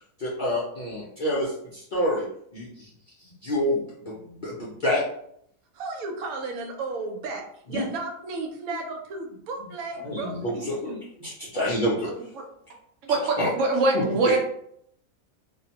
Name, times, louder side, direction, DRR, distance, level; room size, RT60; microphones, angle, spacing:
voice 1, 0.2-2.3 2.5-2.9 3.4-5.0 7.7-7.8 10.0-12.1 13.1-13.5 13.9-14.4, left 1 dB, 60° left, -6 dB, 0.5 m, -28 dB
voice 2, 5.7-11.0, right 3 dB, 90° right, 3 dB, 1.0 m, -34 dB
voice 3, 13.1-14.4, right 3 dB, 70° right, 1 dB, 0.9 m, -22 dB
2.5 x 2.1 x 2.7 m, 0.69 s
omnidirectional pair, 1.5 m